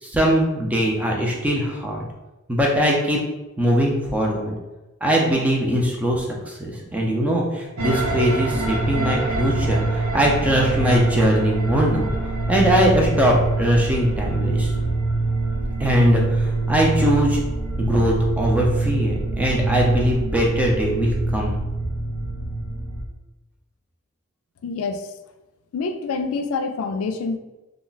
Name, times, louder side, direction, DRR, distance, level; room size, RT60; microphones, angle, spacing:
voice 1, 0.0-2.0 2.5-3.2 3.6-4.5 5.0-14.7 15.8-17.4 17.8-21.6, equal, 5° right, -2 dB, 0.4 m, -21 dB
sound 1, 7.8-23.0, right 2 dB, 85° right, 0.5 m, -24 dB
voice 2, 24.6-25.1 25.7-27.4, left 4 dB, 85° left, 8 dB, 0.3 m, -26 dB
2.3 x 2.1 x 3.9 m, 1.0 s
head